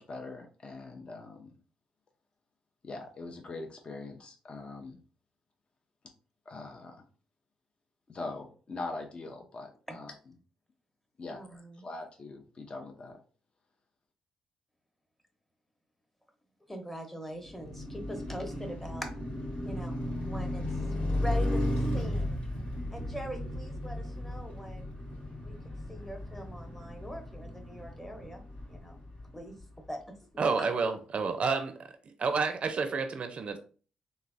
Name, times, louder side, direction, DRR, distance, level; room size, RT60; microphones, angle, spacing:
voice 1, 0.0-1.5 2.8-5.0 6.5-7.0 8.1-10.1 11.2-11.4 11.8-13.2, left 3 dB, 45° left, 3 dB, 0.6 m, -42 dB
voice 2, 11.3-11.9 16.7-19.1 19.6-20.0 20.3-20.8 21.1-22.4 22.9-24.9 25.4-25.6 25.9-28.4 28.7-29.0 29.3-30.7, equal, 10° left, 3 dB, 0.9 m, -42 dB
Car passing by, 17.4-29.6, left 1 dB, 60° left, 1.3 m, -35 dB
voice 3, 30.4-31.8 32.2-33.6, right 4 dB, 50° right, 8 dB, 0.4 m, -29 dB
3.1 x 2.1 x 2.5 m, 0.39 s
hypercardioid pair, 45°, 3 cm